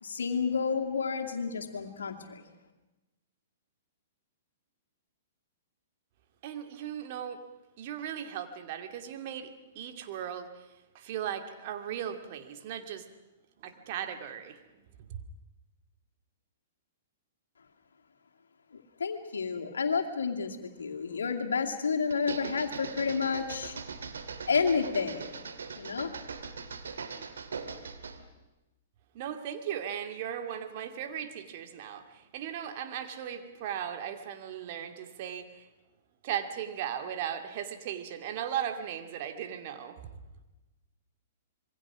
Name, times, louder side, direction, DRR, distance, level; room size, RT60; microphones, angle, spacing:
voice 1, 0.0-2.4 18.7-23.8 24.5-25.3 25.8-26.1, left 5 dB, 75° left, 4 dB, 2.5 m, -30 dB
voice 2, 6.4-7.4 7.8-10.7 10.9-13.1 13.6-14.6 15.1-15.2 29.1-35.7 36.2-40.0, right 9 dB, 50° right, 7 dB, 2.4 m, -37 dB
sound 1, 22.1-28.2, right 5 dB, 75° right, 2.2 m, -40 dB
26.5 x 22.5 x 6.2 m, 1.0 s
hypercardioid pair, 115°, 0 cm